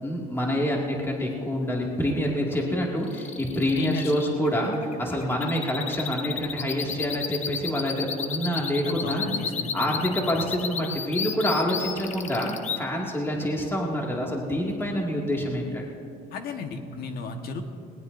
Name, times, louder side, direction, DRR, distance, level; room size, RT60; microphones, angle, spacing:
voice 1, 0.0-9.3 9.7-15.9, equal, 15° left, -2 dB, 2.2 m, -27 dB
sound 1, 3.0-12.8, left 7 dB, 45° left, 0.9 m, -33 dB
voice 2, 3.7-4.1 8.8-10.2 16.3-17.6, left 5 dB, 65° left, 5 dB, 1.4 m, -34 dB
19.5 x 19.0 x 2.6 m, 2.7 s
cardioid pair, 110°, 17 cm